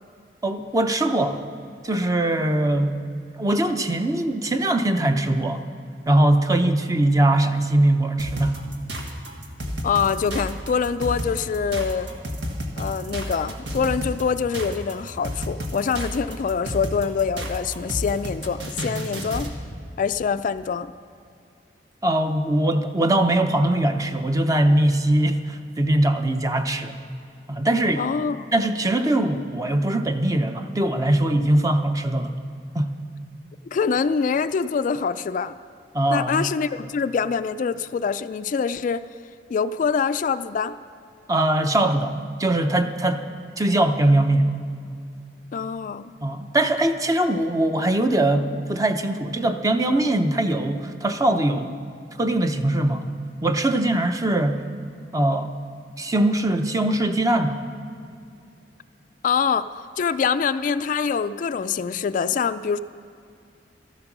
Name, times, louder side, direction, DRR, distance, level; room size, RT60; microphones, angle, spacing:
voice 1, 0.4-1.4 1.8-3.0 3.3-5.6 6.1-8.6 22.0-27.0 27.5-28.0 28.5-32.3 32.7-32.9 35.9-36.5 41.3-43.3 43.6-44.5 46.2-51.8 52.2-53.1 53.4-54.6 55.1-55.5 56.0-57.6, right 1 dB, 20° right, 7 dB, 0.6 m, -21 dB
sound 1, 8.2-19.6, equal, 75° right, 1.6 m, -31 dB
voice 2, 9.8-12.1 12.8-19.5 20.0-20.9 28.0-28.5 33.7-35.5 36.1-39.1 39.5-40.8 45.5-46.1 59.2-59.7 60.0-62.8, left 6 dB, 45° left, 12 dB, 0.3 m, -24 dB
13.5 x 12.5 x 6.0 m, 2.5 s
head